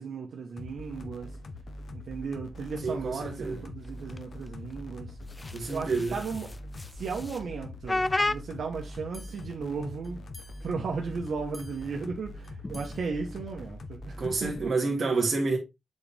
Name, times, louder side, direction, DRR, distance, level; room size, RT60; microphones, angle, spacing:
voice 1, 0.0-1.4 1.9-5.2 5.7-6.6 6.9-14.6, right 5 dB, 90° right, 1.3 m, -36 dB
sound 1, 0.6-14.7, left 2 dB, 70° left, 1.0 m, -43 dB
voice 2, 2.8-3.6 5.5-6.2 14.2-15.6, right 3 dB, 55° right, 2.0 m, -28 dB
sound 2, 3.2-4.9 5.2-7.4 7.9-8.4 8.8-8.9 9.1-9.5 10.0-10.1 10.3-10.7 11.2-11.3 11.5-11.9 12.4-13.1, left 2 dB, 20° left, 0.4 m, -34 dB
7.9 x 4.3 x 3.4 m
wide cardioid pair, 125°, 0 cm